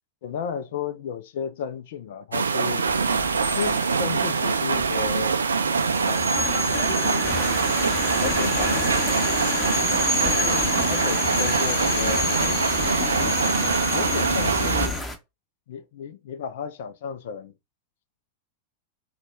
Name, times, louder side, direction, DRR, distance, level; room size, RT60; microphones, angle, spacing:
voice 1, 0.2-2.8 3.5-5.4 6.0-7.4 8.2-9.5 10.2-12.3 13.0-13.4 13.9-15.0 15.7-17.5, left 7 dB, 55° left, 0.4 m, -34 dB
sound 1, 2.3-14.9, right 5 dB, 75° right, 0.4 m, -24 dB
sound 2, 2.9-15.0, left 3 dB, 25° left, 1.2 m, -29 dB
sound 3, 7.2-15.2, left 1 dB, 10° left, 1.0 m, -35 dB
4.0 x 2.3 x 4.5 m
figure-of-eight pair, 90°, 0 cm